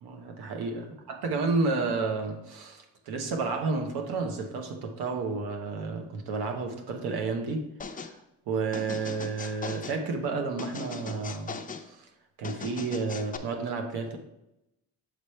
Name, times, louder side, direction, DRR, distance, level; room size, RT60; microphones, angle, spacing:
voice 1, 0.0-7.7 8.0-8.2 8.5-11.6 11.8-12.1 12.4-14.2, right 4 dB, 90° right, 4 dB, 1.0 m, -31 dB
sound 1, 7.8-8.1 8.7-10.0 10.6-11.9 12.4-13.4, left 5 dB, 25° left, 0.5 m, -39 dB
7.5 x 3.4 x 4.3 m, 0.87 s
cardioid pair, 100°, 37 cm